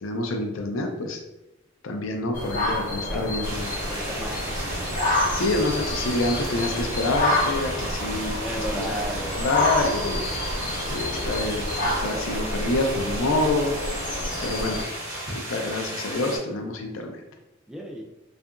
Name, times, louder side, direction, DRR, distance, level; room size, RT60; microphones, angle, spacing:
voice 1, 0.0-1.2 1.8-3.7 5.3-8.4 8.7-9.0 9.4-10.2 10.9-13.7 14.4-14.8 15.3-17.2, left 2 dB, 70° left, 3 dB, 0.4 m, -27 dB
sound 1, 2.3-14.8, left 1 dB, 40° left, 0.8 m, -28 dB
sound 2, 3.4-16.4, right 1 dB, 45° right, 0.8 m, -34 dB
voice 2, 3.9-4.9 8.4-9.8 17.7-18.0, equal, 5° right, 0 dB, 0.3 m, -35 dB
sound 3, 4.6-12.0, right 3 dB, 80° right, 0.4 m, -40 dB
2.7 x 2.4 x 2.4 m, 0.95 s
head